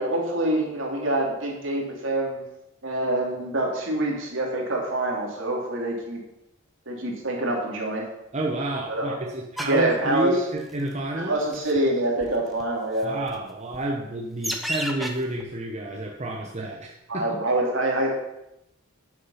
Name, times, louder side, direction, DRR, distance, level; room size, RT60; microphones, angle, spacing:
voice 1, 0.0-2.4 2.8-6.2 6.9-8.0 8.9-9.2 9.6-10.3 11.1-13.2 17.1-18.1, right 1 dB, 65° right, -1 dB, 3.0 m, -26 dB
voice 2, 8.3-11.3 13.0-17.4, right 1 dB, 35° right, 0 dB, 1.0 m, -30 dB
sound 1, 9.6-9.8 10.6-10.9 11.4-11.8 12.2-12.3 12.6-12.7 13.3-13.4 13.7-13.8 14.4-15.1 15.4-15.5, equal, ahead, 1.0 m, -31 dB
9.7 x 7.5 x 5.7 m, 0.86 s
head